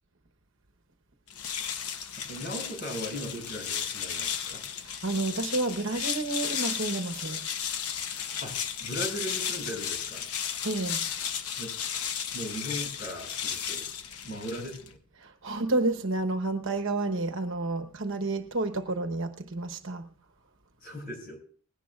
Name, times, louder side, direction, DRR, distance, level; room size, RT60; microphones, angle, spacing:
sound 1, 1.3-15.0, left 8 dB, 90° left, 0.9 m, -34 dB
voice 1, 2.3-4.6 8.4-10.3 11.6-11.7 12.3-13.8 14.2-15.0 20.8-21.4, equal, 45° left, 6.0 m, -38 dB
voice 2, 4.8-7.5 10.6-11.1 15.2-20.1, right 2 dB, 60° right, 1.0 m, -30 dB
20.0 x 17.0 x 2.4 m
head